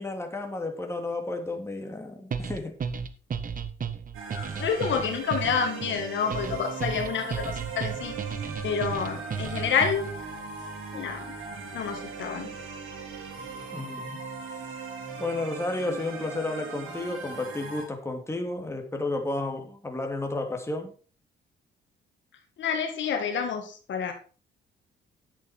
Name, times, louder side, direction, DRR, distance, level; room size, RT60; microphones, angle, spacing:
voice 1, 0.0-2.7 13.7-14.2 15.2-20.9, left 2 dB, 15° left, 3 dB, 2.8 m, -32 dB
sound 1, 2.3-10.2, right 6 dB, 45° right, 1.2 m, -34 dB
sound 2, 4.1-17.9, right 4 dB, 80° right, 4.2 m, -39 dB
voice 2, 4.3-8.2 8.6-10.1 10.9-11.4 11.7-12.5 22.6-24.1, left 6 dB, 70° left, 5 dB, 2.2 m, -28 dB
11.0 x 8.2 x 4.5 m, 0.38 s
cardioid pair, 90°, 20 cm